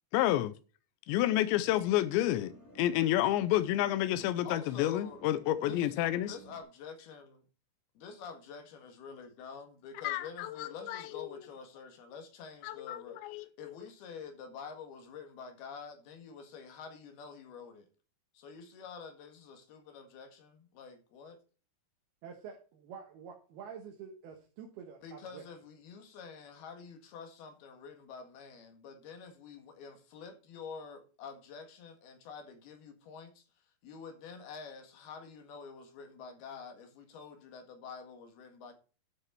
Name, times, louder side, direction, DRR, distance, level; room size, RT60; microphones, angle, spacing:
voice 1, 0.1-0.5 1.1-6.4 10.0-11.3 12.6-13.8, left 13 dB, 90° left, 3.0 m, -30 dB
sound 1, 1.6-6.6, right 2 dB, 15° left, 2.9 m, -54 dB
voice 2, 4.4-5.2 5.6-7.4 8.0-17.9 18.3-21.4 25.0-33.4 33.8-38.7, left 5 dB, 65° left, 3.6 m, -48 dB
voice 3, 22.2-25.4, right 7 dB, 70° right, 3.2 m, -48 dB
12.5 x 6.4 x 4.6 m
omnidirectional pair, 5.0 m